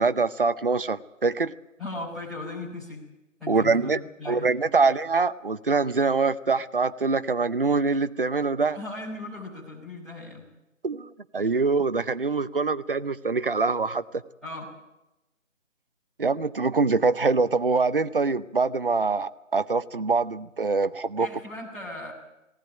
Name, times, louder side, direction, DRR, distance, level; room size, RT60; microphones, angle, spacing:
voice 1, 0.0-1.5 3.5-4.0 4.3-8.8 10.8-14.0 16.2-21.3, right 4 dB, 45° right, 13 dB, 0.7 m, -24 dB
voice 2, 1.8-3.0 3.4-4.5 8.7-10.4 14.4-14.7 21.2-22.1, left 2 dB, ahead, -13 dB, 4.1 m, -37 dB
19.0 x 18.0 x 8.9 m, 0.94 s
figure-of-eight pair, 170°, 39 cm